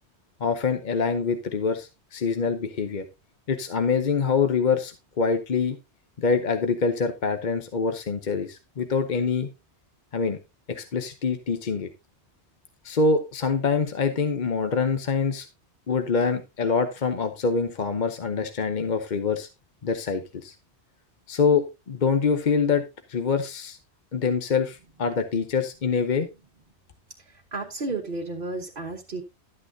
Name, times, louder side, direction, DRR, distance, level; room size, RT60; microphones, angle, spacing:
voice 1, 0.4-3.1 3.5-5.8 6.2-9.5 10.1-10.4 10.7-11.9 12.8-15.5 15.9-19.5 19.8-20.5 21.3-22.8 23.1-23.8 24.1-26.3, left 5 dB, 45° left, 8 dB, 0.9 m, -25 dB
voice 2, 27.2-29.2, right 3 dB, 50° right, -1 dB, 1.3 m, -33 dB
12.0 x 8.8 x 2.7 m, 0.26 s
omnidirectional pair, 1.1 m